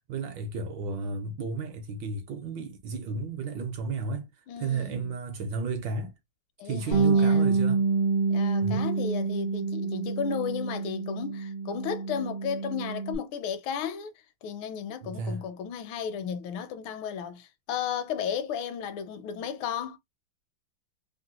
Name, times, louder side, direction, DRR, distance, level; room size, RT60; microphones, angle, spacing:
voice 1, 0.1-6.1 6.6-7.8 8.6-8.9 15.0-15.5, right 4 dB, 70° right, 1.2 m, -33 dB
voice 2, 4.5-5.1 6.6-7.4 8.3-14.1 14.4-20.0, left 7 dB, 80° left, 1.4 m, -34 dB
Bass guitar, 6.9-13.2, right 4 dB, 50° right, 0.5 m, -27 dB
3.5 x 2.1 x 2.8 m
omnidirectional pair, 2.3 m